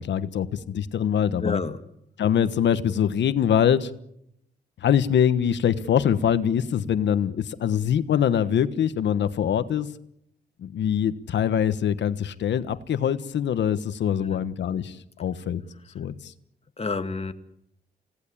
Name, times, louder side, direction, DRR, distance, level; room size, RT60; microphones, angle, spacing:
voice 1, 0.0-1.6 2.2-3.9 4.8-9.9 10.6-15.6 15.9-16.3, left 9 dB, 90° left, 13 dB, 1.3 m, -23 dB
voice 2, 1.4-1.8 14.2-14.4 16.8-17.3, left 4 dB, 35° left, 9 dB, 2.0 m, -29 dB
29.0 x 18.0 x 8.6 m, 0.77 s
cardioid pair, 80°, 18 cm